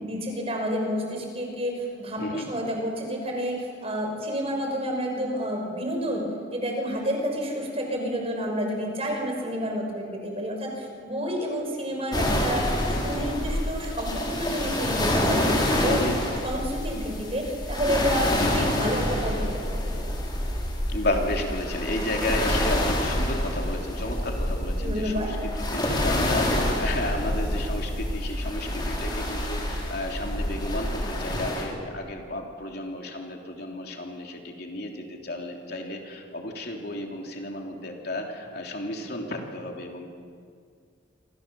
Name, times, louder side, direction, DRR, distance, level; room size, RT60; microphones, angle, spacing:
voice 1, 0.0-6.2 6.5-16.0 16.4-20.0 24.8-25.3, equal, 30° right, 1 dB, 6.0 m, -30 dB
sound 1, 12.1-31.7, left 1 dB, 25° left, 5.0 m, -27 dB
voice 2, 15.8-16.2 18.3-18.7 20.9-40.1, left 1 dB, 55° left, 1 dB, 3.4 m, -32 dB
27.5 x 27.0 x 7.1 m, 2.2 s
head